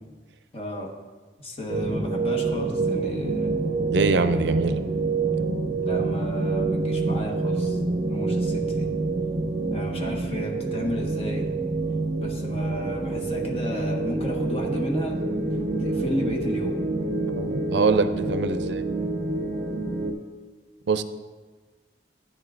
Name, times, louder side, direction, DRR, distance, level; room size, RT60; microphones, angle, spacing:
voice 1, 0.5-0.9 1.4-3.5 5.8-7.8 8.1-8.9 9.7-11.5 12.2-15.2 15.8-16.7, equal, 35° left, 0 dB, 1.3 m, -32 dB
sound 1, 1.7-20.1, right 3 dB, 40° right, 0.7 m, -27 dB
voice 2, 3.9-4.8 17.3-18.8 20.9-21.0, right 4 dB, 80° right, 11 dB, 0.4 m, -23 dB
12.0 x 9.2 x 2.5 m, 1.3 s
head